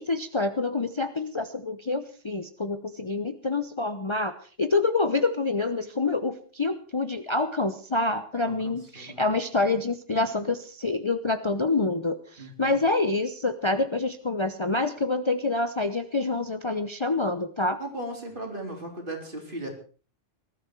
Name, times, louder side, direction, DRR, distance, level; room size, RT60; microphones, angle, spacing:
voice 1, 0.0-4.3 4.6-17.8, left 3 dB, 25° left, 9 dB, 0.8 m, -27 dB
voice 2, 8.4-9.2 12.4-12.8 17.8-19.7, right 1 dB, 45° right, 2 dB, 3.9 m, -37 dB
19.5 x 13.0 x 4.6 m, 0.40 s
omnidirectional pair, 1.2 m